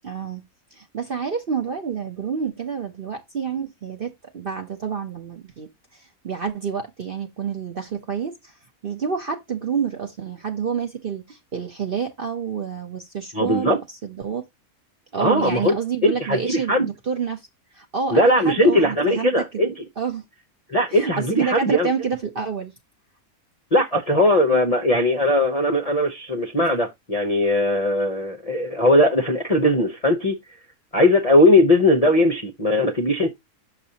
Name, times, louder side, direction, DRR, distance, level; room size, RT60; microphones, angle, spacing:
voice 1, 0.0-0.4 0.7-8.5 8.8-14.4 15.1-17.5 17.7-19.6 20.0-20.2 20.9-22.7, right 6 dB, 45° right, 0.8 m, -28 dB
voice 2, 13.3-13.8 15.2-15.7 16.0-16.9 18.1-19.7 20.7-21.9 23.7-30.3 30.9-33.3, left 1 dB, 35° left, 0.6 m, -19 dB
6.7 x 6.0 x 2.8 m
omnidirectional pair, 1.7 m